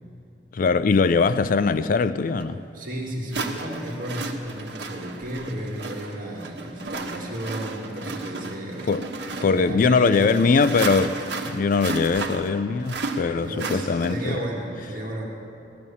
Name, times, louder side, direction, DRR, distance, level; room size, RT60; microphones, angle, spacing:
voice 1, 0.5-2.6 8.9-9.1 9.3-11.2 11.5-14.4, left 4 dB, 50° left, 0.4 m, -21 dB
sound 1, 2.4-2.5 3.3-14.4, right 3 dB, 70° right, 1.4 m, -33 dB
voice 2, 2.7-8.9 9.5-10.6 13.4-15.2, right 1 dB, 50° right, 2.0 m, -33 dB
16.5 x 12.5 x 7.1 m
head